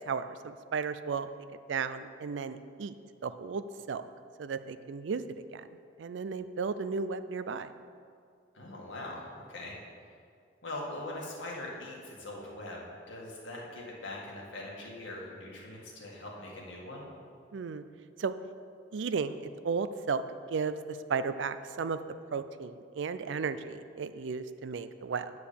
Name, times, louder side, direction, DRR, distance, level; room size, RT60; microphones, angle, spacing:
voice 1, 0.1-1.3 1.7-2.9 3.2-4.0 4.4-5.2 5.5-5.6 6.0-7.7 17.5-17.8 18.2-18.3 18.9-20.2 20.5-22.0 22.3-25.3, right 5 dB, 70° right, 12 dB, 0.4 m, -34 dB
voice 2, 8.5-9.8 10.6-12.8 13.1-17.1, left 2 dB, 80° left, -3 dB, 1.9 m, -42 dB
9.0 x 4.8 x 6.9 m, 2.3 s
head